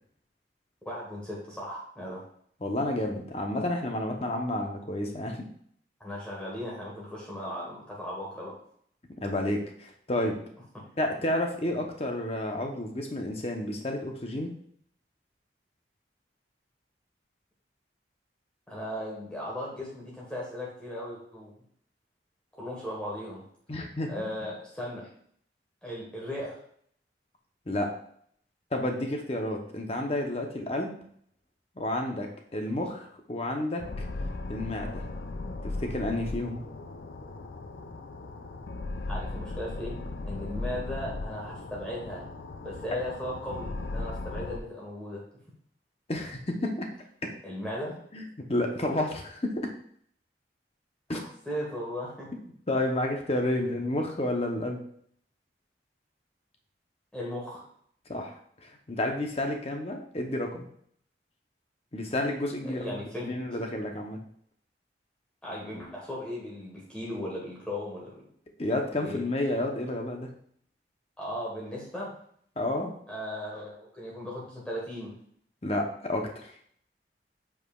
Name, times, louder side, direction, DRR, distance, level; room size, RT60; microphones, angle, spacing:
voice 1, 0.8-2.2 6.0-8.5 10.7-10.8 18.7-21.5 22.5-23.4 24.1-25.1 25.8-26.6 39.1-40.0 40.2-42.2 42.6-45.2 47.4-48.0 51.4-52.3 57.1-57.6 62.6-63.3 65.4-68.2 68.9-69.2 71.2-72.1 73.1-75.2, left 1 dB, 5° left, -5 dB, 1.4 m, -37 dB
voice 2, 2.6-5.5 9.2-10.4 11.0-14.5 23.7-24.1 27.7-27.9 28.7-31.0 31.8-34.1 34.5-35.0 35.6-36.6 46.1-46.9 47.2-47.3 48.1-49.7 51.1-51.2 52.7-54.8 58.1-60.6 61.9-64.2 68.6-70.3 72.6-72.9 75.6-76.5, left 1 dB, 35° left, 3 dB, 0.9 m, -31 dB
sound 1, 33.8-44.6, left 2 dB, 70° left, 0.5 m, -37 dB
8.1 x 4.9 x 2.4 m, 0.63 s
head